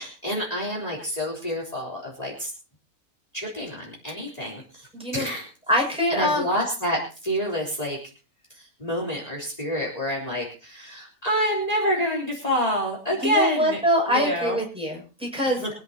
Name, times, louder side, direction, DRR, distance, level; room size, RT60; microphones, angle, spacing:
voice 1, 0.0-2.5 3.3-5.5 6.1-8.0 8.5-13.8 14.1-14.6 15.6-15.7, equal, 25° left, -1 dB, 3.9 m, -28 dB
voice 2, 4.9-5.3 5.7-6.5 13.2-15.6, equal, 5° right, -2 dB, 6.9 m, -24 dB
24.5 x 11.0 x 2.9 m, 0.33 s
omnidirectional pair, 1.5 m